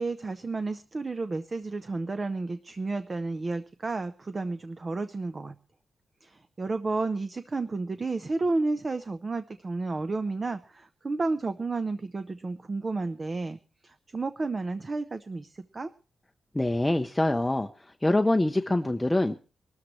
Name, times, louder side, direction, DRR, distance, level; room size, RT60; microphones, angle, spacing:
voice 1, 0.0-5.5 6.2-15.9, right 3 dB, 30° right, 11 dB, 0.7 m, -32 dB
voice 2, 16.5-17.7 18.0-19.3, left 1 dB, 10° left, 5 dB, 0.7 m, -24 dB
23.5 x 13.0 x 3.1 m, 0.33 s
wide cardioid pair, 140°, 0 cm